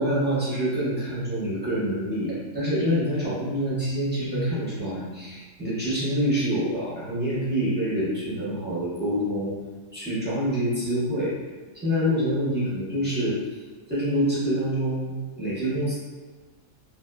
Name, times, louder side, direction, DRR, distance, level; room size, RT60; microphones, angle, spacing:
voice 1, 0.0-9.5 9.9-11.3 11.8-13.4 13.9-15.9, equal, 10° right, -11 dB, 0.6 m, -26 dB
2.6 x 2.3 x 2.2 m, 1.4 s
omnidirectional pair, 1.5 m